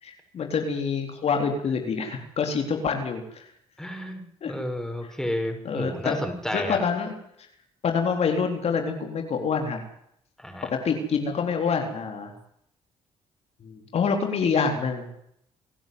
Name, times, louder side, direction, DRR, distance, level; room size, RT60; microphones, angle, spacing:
voice 1, 0.0-3.4 4.4-4.5 5.6-6.2 6.5-7.1 7.8-9.8 10.7-12.3 13.6-15.1, left 5 dB, 60° left, 4 dB, 4.0 m, -26 dB
voice 2, 3.8-6.8 10.4-10.7, equal, 5° left, 4 dB, 6.9 m, -31 dB
28.0 x 11.0 x 9.6 m, 0.73 s
supercardioid pair, 65°, 12 cm